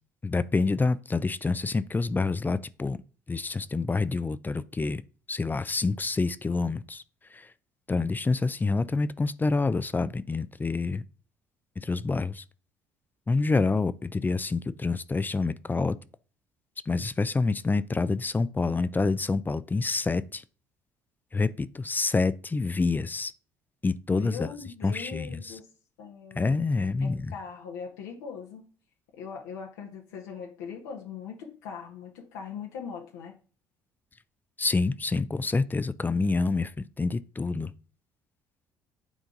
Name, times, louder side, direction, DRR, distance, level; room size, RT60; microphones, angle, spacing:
voice 1, 0.2-3.0 3.3-5.0 5.3-7.0 7.3-7.5 7.9-11.0 11.8-12.4 13.3-16.0 16.9-20.4 21.3-23.3 23.8-24.5 24.8-25.5 26.4-27.3 34.6-37.7, left 3 dB, 20° left, 0.5 m, -27 dB
voice 2, 24.1-25.7 26.0-28.7 29.1-33.3, left 6 dB, 80° left, 1.2 m, -41 dB
9.1 x 3.8 x 3.8 m
hypercardioid pair, 60°, 9 cm